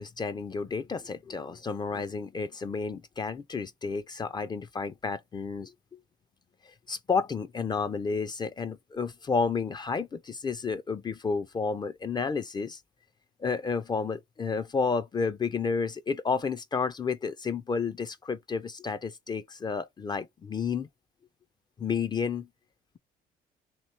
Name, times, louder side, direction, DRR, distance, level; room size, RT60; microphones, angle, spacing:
voice 1, 0.0-6.0 6.6-12.8 13.4-20.9 21.8-22.5, left 5 dB, 25° left, 0.4 m, -31 dB
3.0 x 2.9 x 4.3 m
cardioid pair, 110°, 17 cm